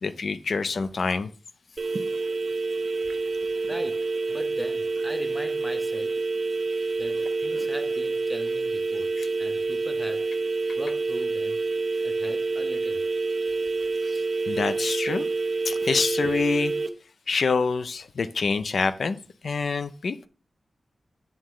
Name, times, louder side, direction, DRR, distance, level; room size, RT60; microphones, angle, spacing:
voice 1, 0.0-1.3 9.2-9.3 14.0-15.3 15.7-16.7 17.3-19.2 19.4-20.3, left 4 dB, 70° left, 0.5 m, -26 dB
sound 1, 1.8-16.9, right 3 dB, 50° right, 0.7 m, -27 dB
voice 2, 3.7-6.2 7.0-10.4 10.8-11.6 12.0-13.0 15.8-15.9, equal, ahead, 0.8 m, -39 dB
8.7 x 7.3 x 3.2 m
wide cardioid pair, 125°, 0 cm